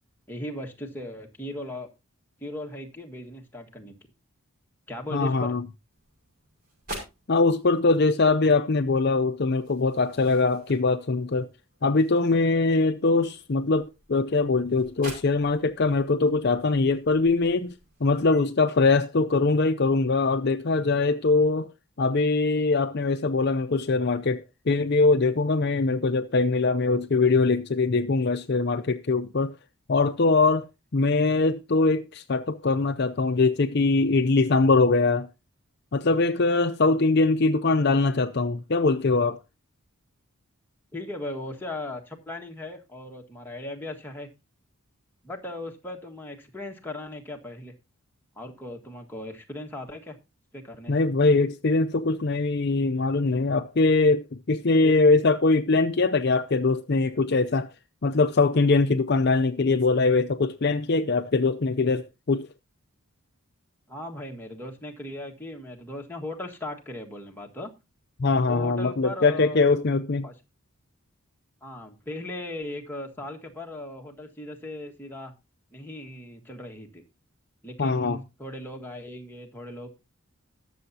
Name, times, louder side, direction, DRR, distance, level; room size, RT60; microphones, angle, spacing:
voice 1, 0.3-1.9 2.4-4.0 4.9-5.6 40.9-44.3 45.2-47.7 48.4-50.2 50.5-51.0 54.8-55.0 63.9-67.7 68.5-69.6 70.2-70.3 71.6-75.3 75.7-77.0 77.6-79.9, left 1 dB, 10° left, 1.5 m, -38 dB
voice 2, 5.1-5.6 7.3-11.5 11.8-17.7 18.0-21.7 22.0-29.5 29.9-30.6 30.9-35.3 35.9-39.4 50.9-57.7 58.0-62.5 68.2-70.3 77.8-78.2, left 3 dB, 45° left, 0.5 m, -22 dB
sound 1, 5.9-18.4, right 1 dB, 40° right, 5.7 m, -48 dB
20.5 x 7.0 x 2.7 m
head